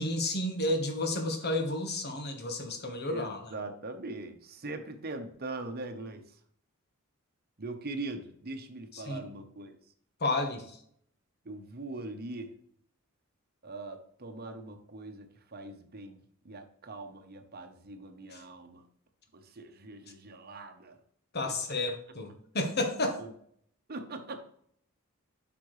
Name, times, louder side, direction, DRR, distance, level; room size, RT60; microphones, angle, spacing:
voice 1, 0.0-3.4 9.1-9.2 10.2-10.8 18.3-18.4 21.3-23.2, left 2 dB, 50° left, 4 dB, 1.4 m, -31 dB
voice 2, 3.1-6.4 7.6-9.8 11.4-12.5 13.6-18.9 19.3-21.0 21.4-21.6 23.2-23.3 23.9-24.4, right 2 dB, 45° right, 6 dB, 1.0 m, -41 dB
8.4 x 6.0 x 3.2 m, 0.65 s
head